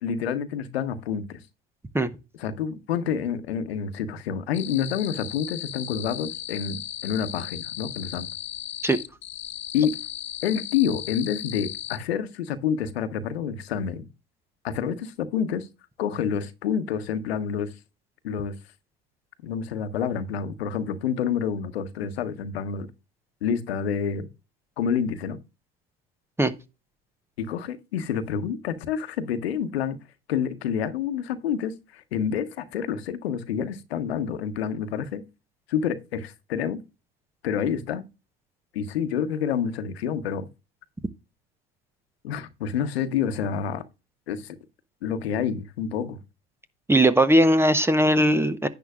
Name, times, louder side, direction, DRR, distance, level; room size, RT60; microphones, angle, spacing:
voice 1, 0.0-1.4 2.4-8.3 9.7-10.0 10.4-14.1 14.6-15.7 16.0-17.7 18.2-18.5 19.4-22.9 23.4-24.3 24.8-25.4 27.4-30.0 30.3-35.2 35.7-36.8 37.4-38.0 38.7-40.5 42.2-43.8 44.3-44.6 45.0-46.2, left 7 dB, 85° left, 1.1 m, -28 dB
sound 1, 4.5-12.0, left 12 dB, 40° left, 1.0 m, -36 dB
voice 2, 46.9-48.7, right 1 dB, 10° right, 0.8 m, -19 dB
10.5 x 8.4 x 2.4 m
hypercardioid pair, 80°, 30 cm